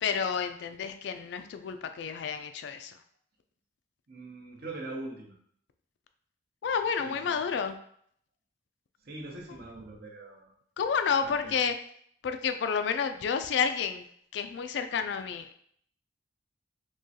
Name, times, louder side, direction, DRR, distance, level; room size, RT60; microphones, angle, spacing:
voice 1, 0.0-2.9 6.6-7.8 10.8-11.8 12.2-14.1 14.3-15.6, left 6 dB, 65° left, 8 dB, 0.3 m, -30 dB
voice 2, 4.1-5.4 7.0-7.4 9.0-10.5 11.2-11.6, right 2 dB, 55° right, 1 dB, 0.7 m, -42 dB
3.7 x 3.0 x 2.7 m, 0.65 s
head